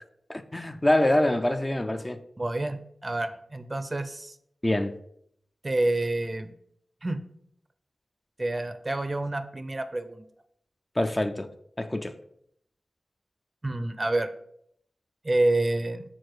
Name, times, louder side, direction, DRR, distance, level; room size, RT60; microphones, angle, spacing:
voice 1, 0.3-2.2 4.6-4.9 11.0-11.5 11.8-12.2, left 1 dB, 25° left, 0.4 m, -25 dB
voice 2, 2.4-4.4 5.6-6.5 7.0-7.2 8.4-10.2 13.6-14.3 15.2-16.0, right 2 dB, 35° right, 0.5 m, -28 dB
4.6 x 4.3 x 4.7 m
cardioid pair, 60°, 0 cm